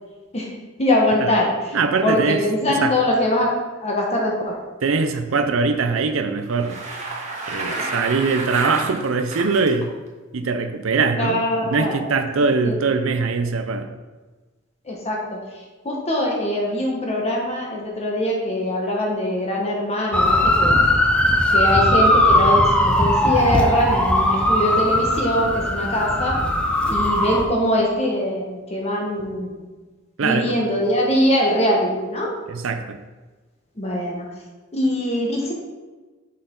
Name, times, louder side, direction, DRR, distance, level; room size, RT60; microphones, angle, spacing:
voice 1, 0.8-1.8 2.0-3.5 3.8-4.6 7.7-7.9 11.2-12.1 12.4-12.8 14.8-15.4 15.8-20.8 21.5-26.4 26.9-29.7 30.2-32.3 33.8-34.3 34.7-35.5, left 1 dB, 30° left, -1 dB, 1.2 m, -22 dB
voice 2, 1.7-2.9 4.8-6.8 7.5-9.9 10.3-11.4 11.6-13.9 30.2-30.6 32.5-33.0, right 4 dB, 75° right, 8 dB, 0.5 m, -22 dB
Bicycle, 6.4-9.7, right 3 dB, 35° right, 1.4 m, -30 dB
sound 1, 20.1-27.4, left 1 dB, 5° left, 0.6 m, -18 dB
6.5 x 5.6 x 3.8 m, 1.3 s
head